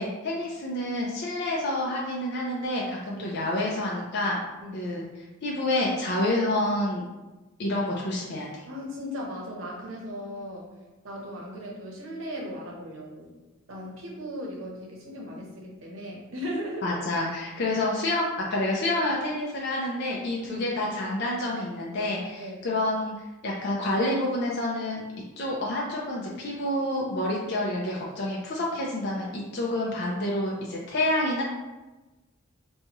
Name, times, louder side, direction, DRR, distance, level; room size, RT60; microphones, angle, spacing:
voice 1, 0.0-4.4 4.7-5.0 5.4-7.1 7.6-8.6 16.8-23.1 23.4-25.0 25.4-31.4, left 1 dB, 55° left, -3 dB, 0.5 m, -28 dB
voice 2, 8.7-10.7 11.0-13.3 13.7-17.0 20.4-20.8 22.4-22.6, equal, 70° right, -1 dB, 0.8 m, -37 dB
4.2 x 2.3 x 2.9 m, 1.1 s
head